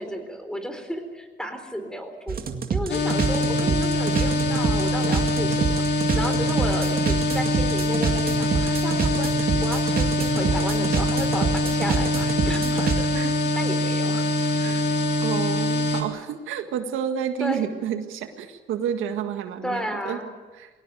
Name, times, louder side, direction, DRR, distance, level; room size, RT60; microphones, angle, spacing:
voice 1, 0.0-2.4 2.7-13.1 13.6-14.2 17.4-17.6 19.6-20.3, equal, 5° left, 7 dB, 4.1 m, -33 dB
sound 1, 2.3-13.0, right 5 dB, 50° right, 2.1 m, -26 dB
sound 2, 2.9-16.0, left 1 dB, 55° left, 3.2 m, -24 dB
voice 2, 15.2-20.2 20.6-20.7, right 8 dB, 85° right, 7 dB, 1.9 m, -30 dB
22.0 x 18.0 x 9.2 m, 1.3 s
cardioid pair, 90°, 20 cm